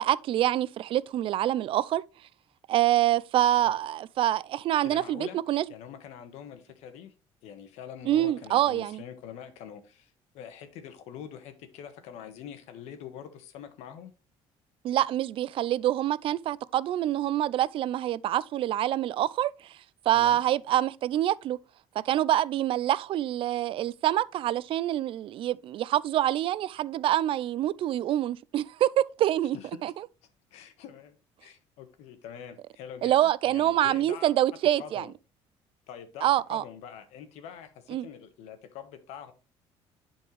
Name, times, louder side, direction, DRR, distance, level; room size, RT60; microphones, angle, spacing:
voice 1, 0.0-2.0 2.7-5.7 8.1-9.0 14.8-19.5 20.1-21.6 22.1-29.6 29.8-29.9 33.0-35.1 36.2-36.6 37.9-38.1, right 12 dB, 55° right, 0.4 m, -26 dB
voice 2, 4.8-5.4 5.7-7.1 7.4-14.1 20.1-20.4 29.5-29.9 30.5-34.3 34.8-35.1 35.9-39.3, left 8 dB, 85° left, 1.4 m, -45 dB
10.5 x 4.5 x 3.2 m
cardioid pair, 120°, 11 cm